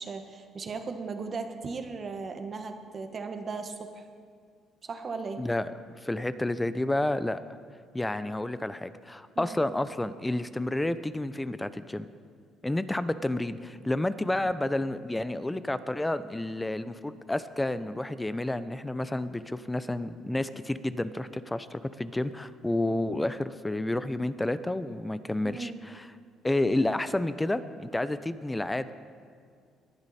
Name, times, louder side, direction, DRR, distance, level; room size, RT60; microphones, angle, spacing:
voice 1, 0.0-4.0 4.8-5.4 9.3-9.6 25.4-25.8, right 4 dB, 40° right, 6 dB, 1.3 m, -37 dB
voice 2, 5.4-5.7 6.0-7.4 7.9-12.1 12.6-26.1 26.4-28.9, left 1 dB, 10° left, 13 dB, 0.6 m, -30 dB
19.0 x 10.5 x 4.2 m, 2.2 s
cardioid pair, 90°, 0 cm